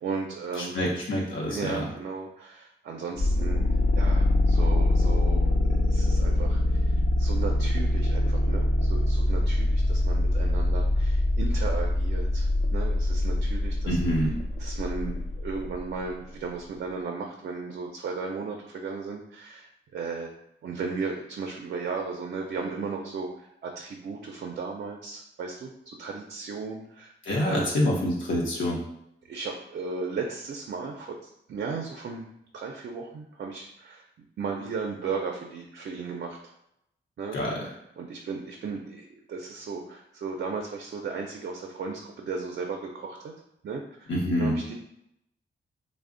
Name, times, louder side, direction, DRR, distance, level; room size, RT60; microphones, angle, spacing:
voice 1, 0.0-0.7 1.5-3.6 4.0-14.3 14.6-20.3 20.6-25.7 26.0-27.1 27.4-27.7 29.3-31.2 31.5-32.3 32.5-36.5 37.2-37.4 38.0-43.3 43.6-44.1 44.4-44.7, right 4 dB, 60° right, 2 dB, 0.4 m, -35 dB
voice 2, 0.6-1.9 13.8-14.3 27.2-28.8 37.3-37.6 44.1-44.6, equal, 75° left, -3 dB, 0.7 m, -26 dB
sound 1, 3.2-15.8, left 1 dB, 40° left, 0.4 m, -24 dB
3.3 x 2.0 x 3.7 m, 0.80 s
wide cardioid pair, 170°, 20 cm